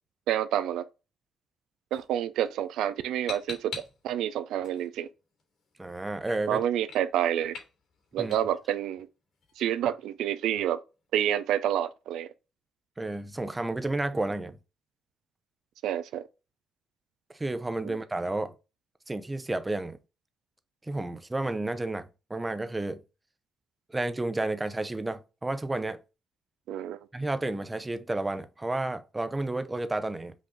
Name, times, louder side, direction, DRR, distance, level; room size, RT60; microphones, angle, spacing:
voice 1, 0.3-0.8 1.9-5.1 6.5-7.6 8.1-9.1 9.6-10.8 11.1-12.3 15.8-16.2 17.8-18.0 26.7-27.0, right 11 dB, 85° right, 0.4 m, -28 dB
sound 1, 1.9-11.7, left 5 dB, 70° left, 2.7 m, -48 dB
voice 2, 5.8-6.6 8.2-8.4 13.0-14.6 17.3-18.5 19.1-20.0 20.9-23.0 23.9-26.0 27.1-30.3, right 2 dB, 15° right, 0.6 m, -31 dB
5.2 x 2.6 x 3.6 m
cardioid pair, 90°, 0 cm